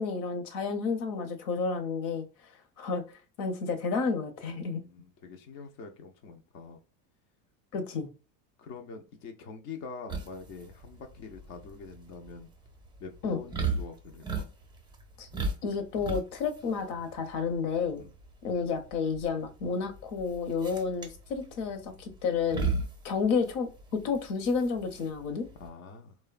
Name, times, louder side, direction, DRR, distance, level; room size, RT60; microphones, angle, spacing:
voice 1, 0.0-2.2 2.8-3.0 3.4-4.8 7.7-8.1 13.2-13.4 15.2-15.3 15.6-18.0 18.4-22.7 23.0-25.5, left 5 dB, 65° left, 8 dB, 0.8 m, -31 dB
voice 2, 4.7-6.8 8.6-12.5 13.0-14.5 18.0-18.1 25.5-26.1, left 5 dB, 40° left, 4 dB, 0.4 m, -45 dB
sound 1, 10.1-25.7, right 4 dB, 10° right, 0.6 m, -37 dB
3.0 x 2.1 x 2.3 m, 0.33 s
supercardioid pair, 125°, 48 cm